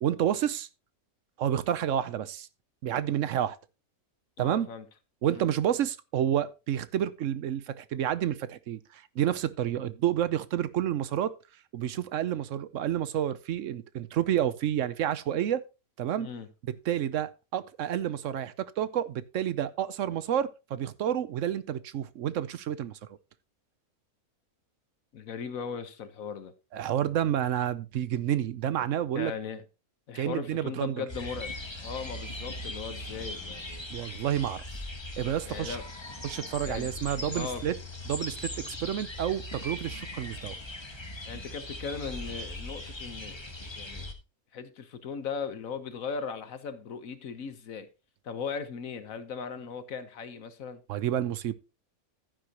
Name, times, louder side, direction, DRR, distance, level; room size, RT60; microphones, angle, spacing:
voice 1, 0.0-0.7 1.4-2.5 2.8-3.6 4.4-4.7 5.2-11.3 11.7-15.6 16.0-16.3 16.9-23.0 26.7-29.3 30.1-31.0 33.9-34.6 35.2-35.8 36.2-37.7 38.1-40.6 50.9-51.5, right 10 dB, 65° right, 1.0 m, -29 dB
voice 2, 4.4-4.8 5.2-5.5 16.2-16.5 25.1-26.5 29.1-29.6 30.1-31.6 31.8-33.9 35.5-35.8 36.6-36.9 37.3-37.7 41.3-44.1 44.5-47.9 48.2-50.8, left 6 dB, 70° left, 1.5 m, -38 dB
sound 1, 31.1-44.1, left 1 dB, 20° left, 1.2 m, -39 dB
11.5 x 9.8 x 2.9 m
omnidirectional pair, 1.5 m